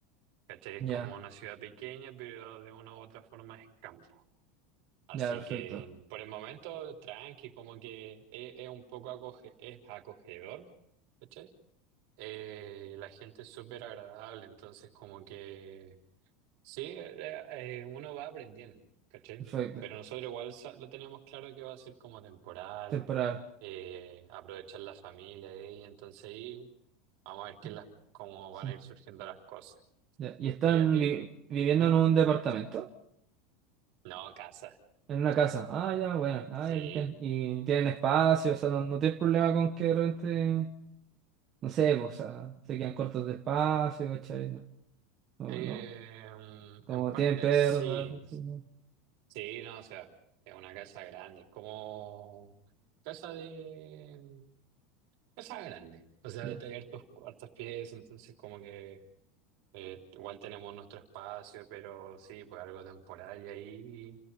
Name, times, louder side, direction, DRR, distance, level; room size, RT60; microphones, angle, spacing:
voice 1, 0.5-4.2 5.1-10.7 11.3-11.5 12.2-16.0 16.6-18.8 19.1-19.4 19.8-23.0 23.6-26.7 27.3-27.9 28.1-29.8 30.7-31.2 31.8-32.0 34.0-34.8 36.7-37.1 45.5-48.4 49.3-50.1 50.5-52.5 53.0-54.5 55.4-59.0 59.7-64.2, right 12 dB, 60° right, 3.7 m, -44 dB
voice 2, 5.1-5.8 19.5-19.7 22.9-23.4 28.6-28.7 30.2-31.2 31.5-32.9 35.1-40.7 41.6-44.6 45.4-45.8 46.9-48.6 56.4-56.5, right 9 dB, 30° right, 1.2 m, -29 dB
29.5 x 17.0 x 5.6 m
supercardioid pair, 160°, 0 cm